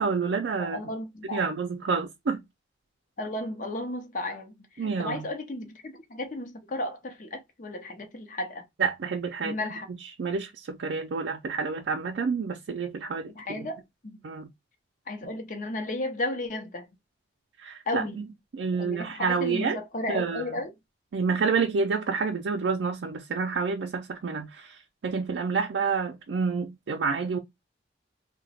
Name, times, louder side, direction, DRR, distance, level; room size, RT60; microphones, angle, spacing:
voice 1, 0.0-0.8 1.3-2.4 4.8-5.2 8.8-9.6 9.9-13.7 14.2-14.5 17.6-18.3 18.5-19.8 20.1-20.5 21.1-27.4, right 5 dB, 70° right, 0.4 m, -29 dB
voice 2, 0.6-1.5 3.2-8.6 9.4-9.9 13.4-14.2 15.1-16.9 17.9-18.2 18.8-20.7, left 1 dB, 45° left, 0.7 m, -34 dB
2.9 x 2.1 x 4.1 m
head